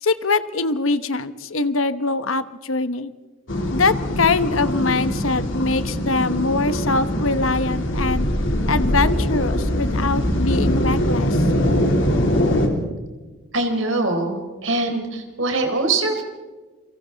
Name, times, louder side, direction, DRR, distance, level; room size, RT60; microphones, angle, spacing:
voice 1, 0.0-3.1 3.7-8.3 8.7-11.5, left 3 dB, 85° left, 12 dB, 1.1 m, -23 dB
sound 1, 3.5-12.7, equal, 70° left, 3.4 m, -22 dB
voice 2, 13.5-16.2, right 2 dB, 75° right, 4 dB, 4.1 m, -23 dB
29.0 x 24.0 x 4.0 m, 1.3 s
head